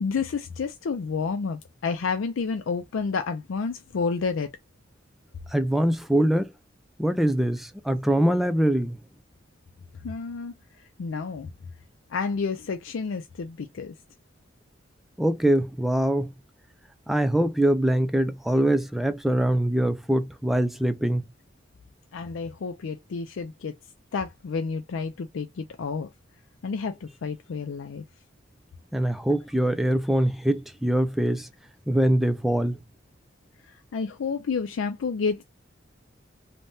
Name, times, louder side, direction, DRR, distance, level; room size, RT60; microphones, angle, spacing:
voice 1, 0.0-4.5 10.0-10.5 11.0-11.5 12.1-13.9 22.1-23.8 24.1-26.1 26.6-28.0 33.7-35.4, left 5 dB, 90° left, 0.4 m, -30 dB
voice 2, 5.5-6.5 7.0-9.0 15.2-16.3 17.1-21.3 28.9-31.5 31.9-32.8, right 1 dB, ahead, 0.4 m, -23 dB
3.4 x 2.1 x 2.6 m
head